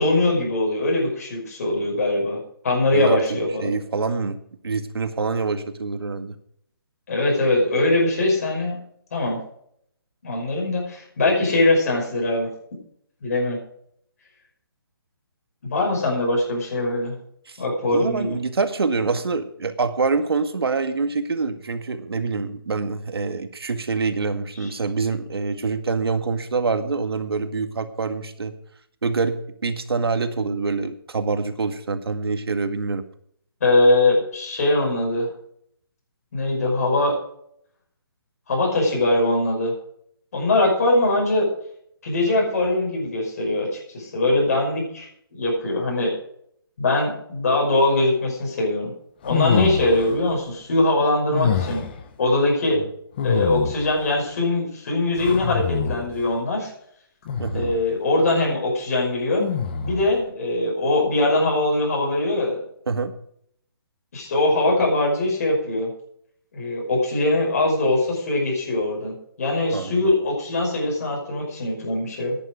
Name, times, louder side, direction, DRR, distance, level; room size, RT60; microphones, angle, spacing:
voice 1, 0.0-3.7 7.1-8.8 9.1-9.4 10.2-12.5 13.2-13.6 15.6-17.2 17.6-18.4 24.6-24.7 33.6-35.3 36.3-37.2 38.5-39.7 40.3-41.5 42.0-46.1 46.8-48.9 49.2-51.9 52.2-52.8 53.2-56.7 57.5-59.4 59.8-62.6 64.1-65.9 66.5-72.4, left 2 dB, 40° left, -2 dB, 5.6 m, -22 dB
voice 2, 2.9-4.4 4.6-6.4 17.5-17.6 17.9-28.5 29.0-29.4 29.6-33.0 52.8-52.9 57.4-57.7 62.9-63.1 69.7-70.1, right 4 dB, 90° right, 8 dB, 1.9 m, -25 dB
sound 1, 49.2-50.2 51.3-52.0 53.2-54.0 55.2-56.2 57.3-57.8 59.4-60.1, left 7 dB, 25° left, 1.2 m, -25 dB
14.0 x 10.0 x 5.0 m, 0.68 s
hypercardioid pair, 175°, 13 cm